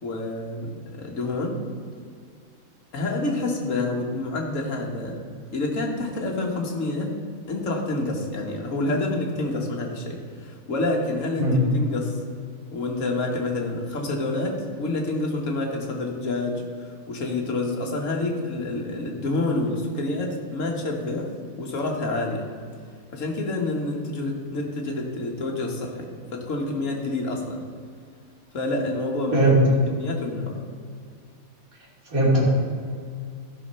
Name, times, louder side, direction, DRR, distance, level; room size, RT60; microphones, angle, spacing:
voice 1, 0.0-1.6 2.9-5.2 5.5-7.2 7.5-12.2 12.7-21.3 21.6-22.5 23.1-27.6 28.5-29.5 29.9-30.6, left 2 dB, 65° left, 0 dB, 1.8 m, -28 dB
voice 2, 32.1-32.4, right 2 dB, 80° right, -4 dB, 3.1 m, -19 dB
13.5 x 5.8 x 5.5 m, 2.2 s
omnidirectional pair, 1.5 m